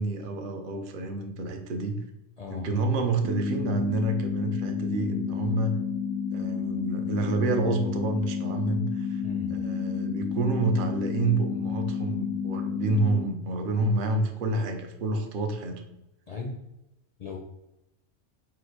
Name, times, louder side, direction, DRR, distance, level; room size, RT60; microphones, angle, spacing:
voice 1, 0.0-2.0 2.5-5.7 6.3-9.2 9.5-15.8, right 2 dB, 55° right, 4 dB, 0.6 m, -28 dB
voice 2, 2.4-2.7 9.2-9.5 16.3-16.6 17.2-17.4, left 5 dB, 60° left, 0 dB, 0.4 m, -36 dB
sound 1, 3.2-13.2, left 6 dB, 85° left, 1.0 m, -31 dB
3.9 x 2.4 x 4.6 m, 0.88 s
omnidirectional pair, 1.3 m